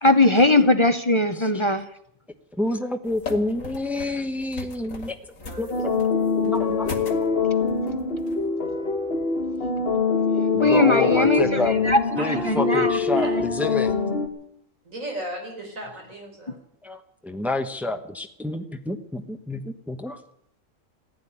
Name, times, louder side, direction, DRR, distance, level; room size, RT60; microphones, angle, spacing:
voice 1, 0.0-1.9 10.6-12.0 12.4-13.4, left 2 dB, 25° left, 9 dB, 0.8 m, -20 dB
voice 2, 2.5-5.2 5.6-5.9 6.4-6.9 10.5-11.9 12.2-13.9 16.8-20.2, left 2 dB, ahead, 6 dB, 1.1 m, -28 dB
sound 1, 3.0-8.5, left 3 dB, 80° left, 2.3 m, -39 dB
voice 3, 5.4-5.9 12.2-12.5 13.1-13.4 14.8-16.6, equal, 80° right, 2 dB, 5.0 m, -35 dB
sound 2, 5.7-14.3, left 4 dB, 45° left, 1.9 m, -24 dB
15.0 x 9.7 x 9.9 m, 0.71 s
omnidirectional pair, 1.4 m